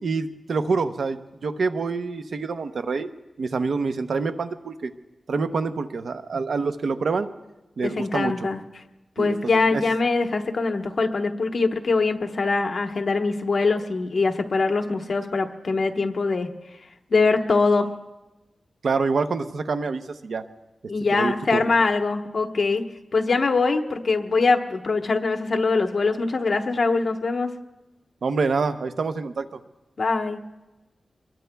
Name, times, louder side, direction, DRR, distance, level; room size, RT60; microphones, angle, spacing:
voice 1, 0.0-3.1 3.4-4.9 5.3-7.3 7.8-8.3 9.2-9.8 18.8-20.4 21.1-21.6 28.2-29.6, right 4 dB, 75° right, 9 dB, 0.7 m, -26 dB
voice 2, 7.8-8.6 9.2-16.5 17.1-17.9 20.9-22.8 23.1-27.5 30.0-30.4, left 3 dB, 55° left, 4 dB, 1.1 m, -23 dB
25.5 x 21.5 x 2.3 m, 1.0 s
wide cardioid pair, 130°, 0 cm